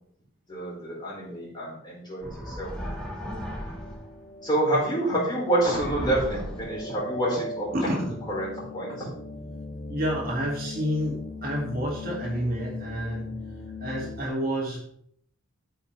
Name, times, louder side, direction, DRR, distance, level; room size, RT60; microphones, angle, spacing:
voice 1, 0.5-2.7 4.4-8.0 8.3-8.5 8.7-9.1, right 1 dB, 20° left, -6 dB, 4.5 m, -27 dB
sound 1, 2.2-4.2 5.6-7.0, equal, 5° left, 1.9 m, -36 dB
sound 2, 2.5-14.3, left 2 dB, 45° left, 1.3 m, -40 dB
voice 2, 7.7-8.2 9.9-13.3 13.8-14.9, equal, 45° right, -3 dB, 2.5 m, -29 dB
14.0 x 5.6 x 3.4 m, 0.67 s
head